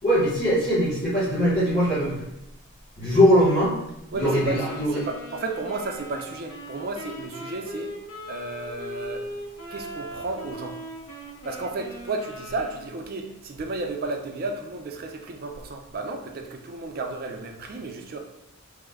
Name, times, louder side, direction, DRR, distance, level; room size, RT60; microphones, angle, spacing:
voice 1, 0.0-2.2 3.0-3.7 4.1-5.0, equal, 35° left, -12 dB, 1.1 m, -21 dB
Wind instrument woodwind instrument, 4.1-13.2, equal, 75° left, 0.7 m, -39 dB
voice 2, 4.1-7.9 8.3-9.3 9.7-10.8 11.4-18.2, right 3 dB, 45° right, 3 dB, 0.4 m, -33 dB
3.1 x 2.0 x 3.4 m, 0.85 s
head